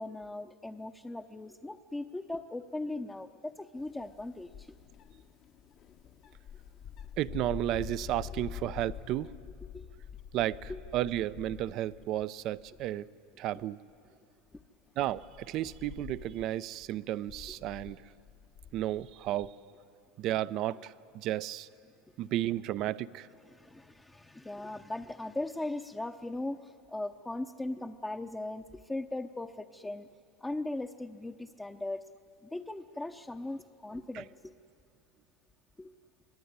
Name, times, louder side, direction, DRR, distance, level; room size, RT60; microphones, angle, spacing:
voice 1, 0.0-4.7 8.3-8.4 9.7-9.9 10.7-10.8 14.5-14.6 23.4-30.1 30.4-32.1 32.4-34.5 35.8-35.9, left 2 dB, 10° left, 3 dB, 0.8 m, -39 dB
sound 1, 3.7-12.2 12.6-13.0 13.5-13.6 14.5-19.5, left 8 dB, 50° left, 1.2 m, -47 dB
voice 2, 7.2-9.3 10.3-13.1 13.4-13.8 15.0-18.0 18.7-19.5 20.2-21.7 22.2-23.3 34.1-34.2, right 13 dB, 55° right, 16 dB, 0.6 m, -33 dB
25.0 x 20.0 x 9.7 m, 2.4 s
supercardioid pair, 105°, 0 cm